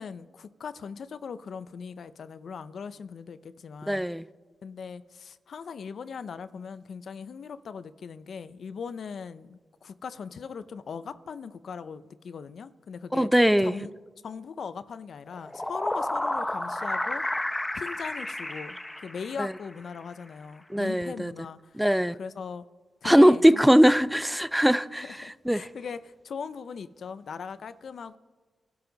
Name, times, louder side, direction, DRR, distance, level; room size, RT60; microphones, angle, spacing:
voice 1, 0.0-4.0 4.6-13.3 13.6-13.9 14.2-17.2 17.7-18.8 19.0-21.8 22.2-22.6 23.0-23.7 25.0-28.2, left 6 dB, 70° left, 0.6 m, -39 dB
voice 2, 3.9-4.2 13.1-13.7 19.4-19.5 20.7-21.3 21.8-22.1 23.0-25.1 25.5-25.7, equal, 5° right, 0.5 m, -20 dB
sound 1, 15.3-19.7, left 1 dB, 15° left, 0.9 m, -31 dB
28.0 x 12.0 x 4.0 m
cardioid pair, 65°, 0 cm